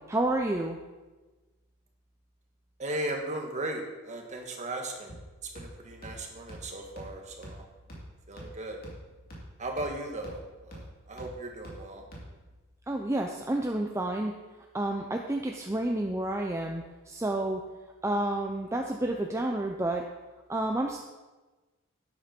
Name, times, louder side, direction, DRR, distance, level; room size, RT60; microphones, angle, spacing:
voice 1, 0.1-0.8 12.9-14.3 14.7-17.6 18.0-20.0 20.5-21.0, right 1 dB, 15° right, 2 dB, 0.6 m, -30 dB
voice 2, 2.8-5.1 5.4-7.6 8.3-8.8 9.6-12.0, right 1 dB, 35° right, 2 dB, 1.7 m, -37 dB
sound 1, 5.1-12.6, equal, 45° left, 3.1 m, -47 dB
11.5 x 9.8 x 4.5 m, 1.2 s
head